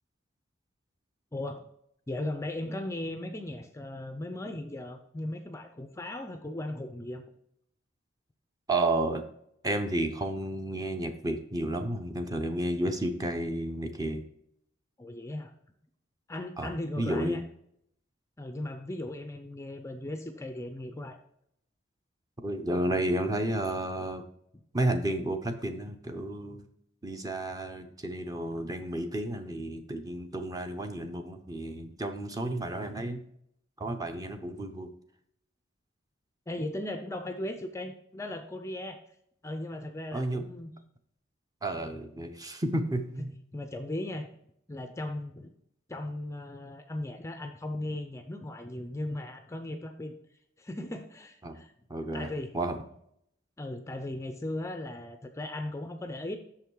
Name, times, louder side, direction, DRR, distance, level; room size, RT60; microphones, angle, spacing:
voice 1, 1.3-1.7 2.1-7.2 15.0-15.5 16.3-17.4 18.4-21.2 36.5-39.0 39.4-40.7 43.2-43.3 43.5-44.3 44.7-45.5 45.9-50.1 50.6-51.7 52.1-52.5 53.6-56.4, left 1 dB, 15° left, 7 dB, 0.5 m, -37 dB
voice 2, 8.7-9.2 9.6-14.2 16.6-16.7 17.0-17.4 22.4-24.2 24.7-26.7 27.0-33.2 33.8-34.9 40.1-40.4 41.6-43.4 51.4-51.6 51.9-52.7, right 1 dB, 20° right, 6 dB, 0.7 m, -31 dB
6.8 x 5.7 x 4.6 m, 0.72 s
head